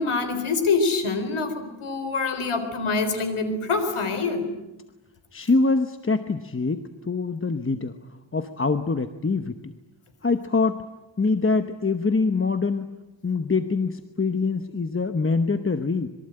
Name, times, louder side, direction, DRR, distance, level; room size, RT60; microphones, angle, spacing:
voice 1, 0.0-4.5, left 4 dB, 85° left, 7 dB, 4.2 m, -25 dB
voice 2, 5.3-7.9 8.3-9.7 10.2-10.8 11.2-12.9 13.2-16.1, left 4 dB, 25° left, 8 dB, 1.0 m, -24 dB
26.0 x 23.0 x 8.9 m, 1.0 s
wide cardioid pair, 145°, 49 cm